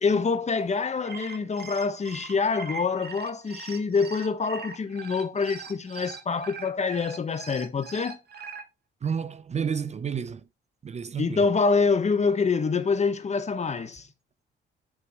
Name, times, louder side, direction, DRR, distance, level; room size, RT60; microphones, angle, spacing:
voice 1, 0.0-8.2 11.2-14.1, left 4 dB, 35° left, 1.2 m, -26 dB
sound 1, 0.9-8.6, right 5 dB, 55° right, 1.6 m, -41 dB
voice 2, 9.0-10.5 10.8-11.5, right 7 dB, 35° right, 0.6 m, -31 dB
9.8 x 4.7 x 3.6 m
cardioid pair, 90°, 20 cm